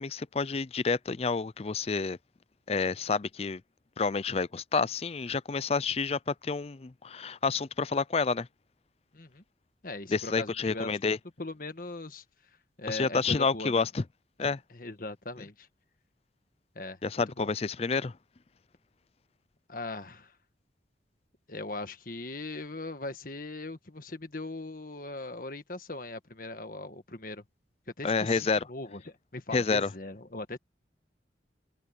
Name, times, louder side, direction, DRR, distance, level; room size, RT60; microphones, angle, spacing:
voice 1, 0.0-2.2 2.7-3.6 4.0-8.5 10.1-11.2 12.9-14.0 14.4-14.6 17.0-18.2 28.0-28.7 29.5-29.9, left 4 dB, 35° left, 0.4 m, -29 dB
voice 2, 9.8-12.2 12.8-13.8 14.4-15.7 16.7-17.0 17.4-17.5 19.7-20.3 21.5-27.4 28.0-30.6, left 2 dB, 50° left, 1.6 m, -40 dB
open air
head